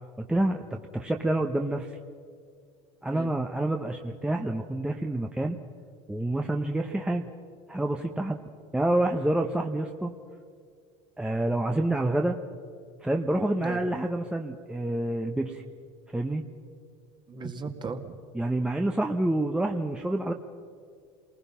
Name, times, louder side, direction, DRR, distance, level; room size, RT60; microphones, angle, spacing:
voice 1, 0.2-2.0 3.0-5.6 6.1-7.3 7.7-8.4 8.7-10.1 11.2-12.4 13.0-15.6 16.1-16.4 18.3-20.3, right 1 dB, 5° right, 3 dB, 1.0 m, -28 dB
voice 2, 17.3-18.2, right 4 dB, 30° right, 5 dB, 2.2 m, -36 dB
27.5 x 20.0 x 5.7 m, 2.2 s
supercardioid pair, 90°, 15 cm